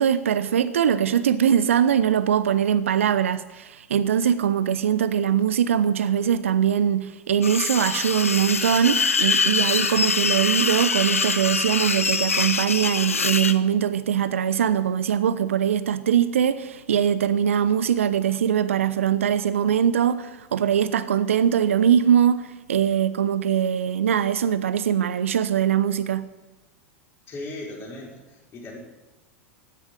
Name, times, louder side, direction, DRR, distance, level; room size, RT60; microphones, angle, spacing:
voice 1, 0.0-26.3, right 9 dB, 70° right, 0.8 m, -22 dB
sound 1, 7.4-13.6, left 5 dB, 80° left, 0.8 m, -24 dB
voice 2, 27.3-28.8, left 2 dB, 30° left, 5.7 m, -37 dB
16.0 x 11.0 x 8.0 m
figure-of-eight pair, 90°, 7 cm